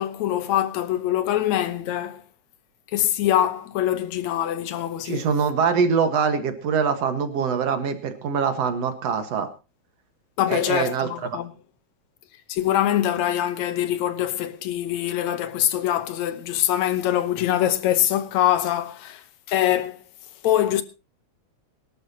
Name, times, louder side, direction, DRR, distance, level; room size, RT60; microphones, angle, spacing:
voice 1, 0.0-2.2 2.9-5.3 10.4-11.5 12.5-20.0 20.4-20.8, left 12 dB, 75° left, 2.3 m, -24 dB
voice 2, 5.0-9.5 10.5-11.1, right 6 dB, 60° right, 2.7 m, -23 dB
22.5 x 12.0 x 2.9 m
omnidirectional pair, 3.3 m